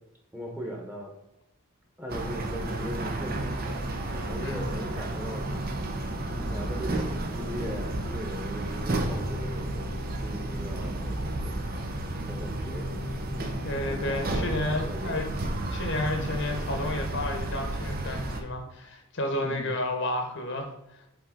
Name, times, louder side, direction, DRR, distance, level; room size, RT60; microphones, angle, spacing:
voice 1, 0.3-1.1 2.0-3.8 4.3-5.5 6.3-9.9 10.2-11.6 12.3-12.9 13.4-15.3 19.3-19.7, equal, 10° right, -1 dB, 1.2 m, -39 dB
sound 1, 2.1-18.4, right 1 dB, 45° right, 0.7 m, -32 dB
voice 2, 4.4-5.0 13.6-15.3 15.7-20.7, left 1 dB, 55° left, 3 dB, 1.0 m, -31 dB
sound 2, 9.0-14.0, left 2 dB, 10° left, 0.5 m, -42 dB
7.2 x 3.9 x 3.8 m, 0.89 s
head